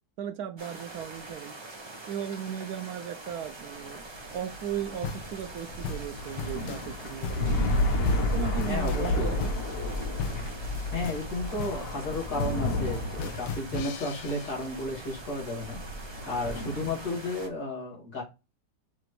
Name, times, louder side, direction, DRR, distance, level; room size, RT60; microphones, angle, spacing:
voice 1, 0.2-1.5 2.1-7.6 8.2-9.6, right 9 dB, 70° right, 1.0 m, -37 dB
sound 1, 0.6-17.5, right 2 dB, 25° right, 0.6 m, -44 dB
sound 2, 3.8-17.4, left 1 dB, 50° left, 0.8 m, -32 dB
sound 3, 5.0-14.5, left 5 dB, 85° left, 1.4 m, -38 dB
voice 2, 8.7-9.3 10.9-15.8 16.3-18.2, left 2 dB, 65° left, 2.7 m, -33 dB
5.9 x 2.5 x 3.1 m
omnidirectional pair, 1.8 m